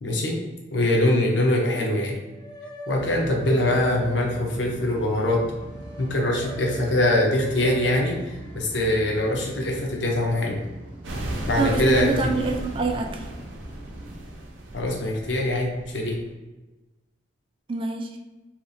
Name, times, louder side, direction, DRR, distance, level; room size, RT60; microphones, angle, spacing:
voice 1, 0.0-0.4 0.7-2.2 2.9-5.4 6.0-10.6 11.5-12.1 14.7-16.2, left 1 dB, 70° left, -1 dB, 0.7 m, -23 dB
sound 1, 1.3-1.9 2.2-10.3, right 1 dB, 20° left, 0.6 m, -43 dB
sound 2, 3.0-14.2, right 1 dB, 45° right, 0.8 m, -41 dB
sound 3, 11.0-16.3, right 1 dB, 85° right, 0.5 m, -35 dB
voice 2, 11.6-13.3 17.7-18.2, right 3 dB, 30° right, 4 dB, 0.3 m, -26 dB
2.8 x 2.4 x 2.6 m, 1.1 s
head